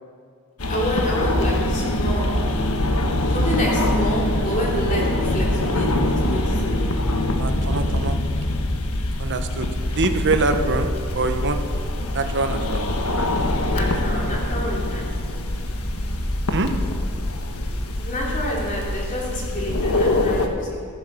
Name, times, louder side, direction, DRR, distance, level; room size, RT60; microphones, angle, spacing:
sound 1, 0.6-20.5, left 1 dB, 75° left, 1.4 m, -23 dB
voice 1, 0.7-2.2 3.3-6.9 13.6-15.0 18.0-20.9, equal, 35° left, -4 dB, 3.2 m, -28 dB
voice 2, 7.4-8.2 9.2-9.7 10.0-10.9 11.1-11.6 12.1-12.8 16.5-16.7, right 3 dB, 55° right, 6 dB, 1.1 m, -24 dB
14.5 x 14.5 x 5.7 m, 2.1 s
head